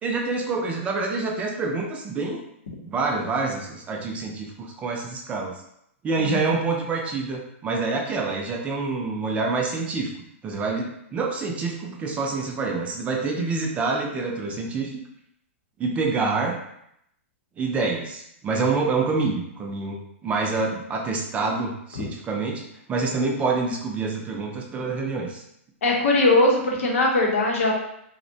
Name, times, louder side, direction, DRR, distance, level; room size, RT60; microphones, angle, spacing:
voice 1, 0.0-2.4 2.8-5.6 6.0-10.1 10.4-15.0 15.8-16.6 17.6-22.6 22.9-25.4, right 3 dB, 20° right, 0 dB, 0.4 m, -27 dB
voice 2, 6.2-6.5 22.0-22.1 25.8-27.7, left 2 dB, 75° left, -1 dB, 0.7 m, -20 dB
2.5 x 2.1 x 2.6 m, 0.75 s
hypercardioid pair, 135°, 7 cm